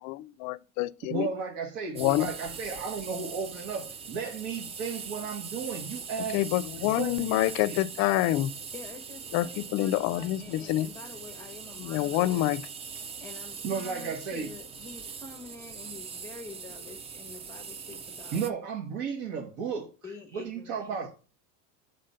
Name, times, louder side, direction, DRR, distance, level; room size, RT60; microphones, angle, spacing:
voice 1, 0.0-1.3 2.0-2.3 6.3-8.5 9.3-9.5 9.7-10.9 11.8-12.6, left 15 dB, 55° left, 0.5 m, -27 dB
voice 2, 1.1-6.4 6.8-7.8 13.6-14.5 18.3-19.9 20.3-21.1, right 5 dB, 75° right, 1.6 m, -34 dB
sound 1, 2.0-18.5, right 6 dB, 20° right, 0.3 m, -42 dB
voice 3, 8.7-12.5 13.2-18.4 20.0-21.1, left 3 dB, 10° left, 0.8 m, -47 dB
6.5 x 4.1 x 5.5 m
cardioid pair, 150°, 34 cm